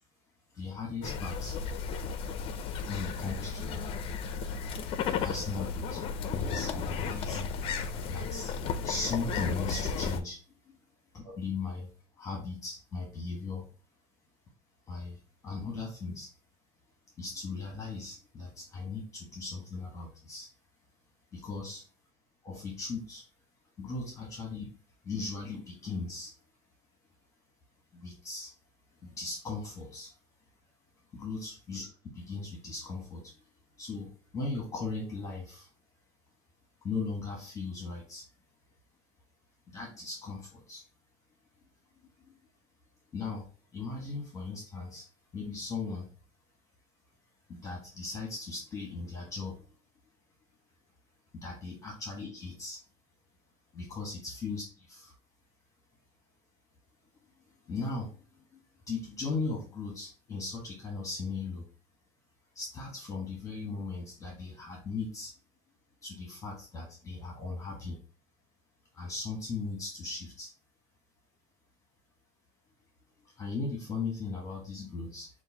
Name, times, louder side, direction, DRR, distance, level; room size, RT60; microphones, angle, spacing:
voice 1, 0.5-1.5 2.7-3.8 5.2-6.0 6.4-7.5 8.1-8.5 8.8-10.4 11.1-11.9 12.2-13.7 14.9-16.3 17.2-20.5 21.3-21.8 22.4-23.2 23.8-24.7 25.0-26.3 27.9-28.5 29.0-30.1 31.1-31.9 32.1-33.4 33.8-35.7 36.8-38.2 39.7-40.8 42.0-42.4 43.1-43.5 43.7-45.1 45.3-46.1 47.5-49.6 51.3-52.8 53.7-55.1 57.6-58.6 58.9-61.6 62.5-65.3 66.0-68.0 68.9-70.5 73.2-75.3, left 4 dB, 20° left, -1 dB, 1.2 m, -38 dB
sound 1, 1.0-10.2, left 5 dB, 40° left, 0.5 m, -34 dB
6.4 x 2.5 x 2.7 m, 0.38 s
cardioid pair, 150°, 14 cm